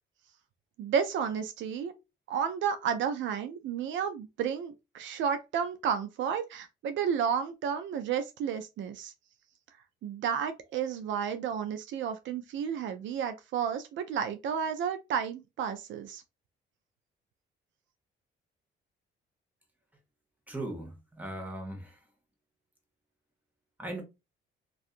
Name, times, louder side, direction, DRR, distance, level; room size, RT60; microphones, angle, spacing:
voice 1, 0.8-1.9 2.3-9.1 10.0-16.2, right 7 dB, 70° right, 0.4 m, -32 dB
voice 2, 20.5-22.0 23.8-24.0, right 1 dB, 10° right, 1.0 m, -38 dB
2.6 x 2.4 x 2.4 m
cardioid pair, 90°, 20 cm